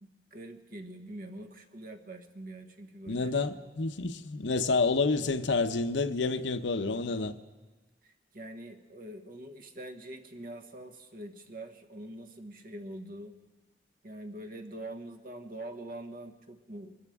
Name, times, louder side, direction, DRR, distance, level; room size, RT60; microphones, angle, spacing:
voice 1, 0.0-3.4 8.0-13.3 14.0-17.0, right 1 dB, 50° right, 1.2 m, -44 dB
voice 2, 3.1-7.4, left 3 dB, 90° left, 0.8 m, -29 dB
24.0 x 14.0 x 3.6 m
head